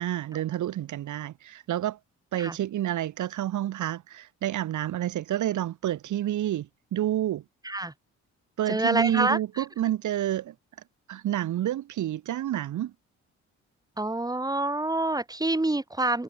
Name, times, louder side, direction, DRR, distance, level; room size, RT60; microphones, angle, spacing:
voice 1, 0.0-2.0 2.3-7.4 8.6-10.5 11.1-12.9, right 12 dB, 75° right, 3.9 m, -29 dB
voice 2, 8.7-9.4 14.0-16.2, right 2 dB, 10° right, 2.8 m, -26 dB
cardioid pair, 90°, 30 cm